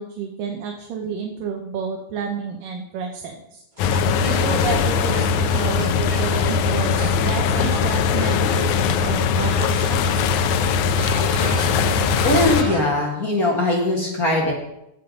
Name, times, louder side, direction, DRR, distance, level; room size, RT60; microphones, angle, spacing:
voice 1, 0.0-3.6 4.2-10.3, right 6 dB, 75° right, 2 dB, 2.6 m, -30 dB
sound 1, 3.8-12.6, left 6 dB, 90° left, 1.7 m, -20 dB
sound 2, 3.8-9.1 9.4-12.8, right 1 dB, 15° right, 1.8 m, -32 dB
voice 2, 12.2-14.5, left 2 dB, 35° left, -2 dB, 1.5 m, -20 dB
16.0 x 7.0 x 3.8 m, 0.86 s
omnidirectional pair, 4.1 m